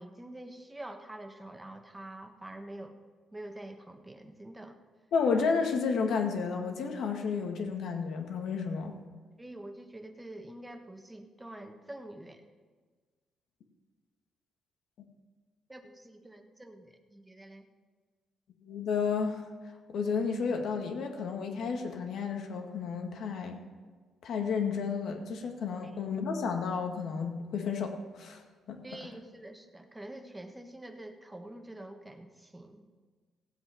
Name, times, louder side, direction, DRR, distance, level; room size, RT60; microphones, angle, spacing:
voice 1, 0.0-3.0 3.3-4.8 9.4-12.4 15.7-17.6 25.8-25.9 28.8-32.9, right 1 dB, 15° right, 5 dB, 1.4 m, -46 dB
voice 2, 5.1-9.0 18.6-19.4 19.9-23.6 24.2-28.4 28.7-28.8, left 5 dB, 70° left, 3 dB, 1.9 m, -31 dB
16.5 x 7.9 x 5.9 m, 1.5 s
cardioid pair, 90°, 0 cm